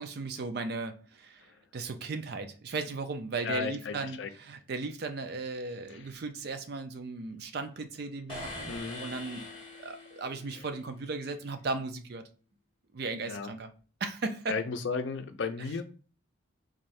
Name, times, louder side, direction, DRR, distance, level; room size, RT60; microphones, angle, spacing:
voice 1, 0.0-9.5 9.8-12.3 12.9-13.7 14.0-14.6, right 3 dB, 55° right, 0.4 m, -36 dB
voice 2, 3.4-4.3 5.9-6.1 8.7-9.0 10.5-10.7 13.2-13.5 14.5-15.8, left 5 dB, 70° left, 0.5 m, -35 dB
sound 1, 8.3-10.5, left 2 dB, 30° left, 1.0 m, -42 dB
3.7 x 2.6 x 3.2 m
head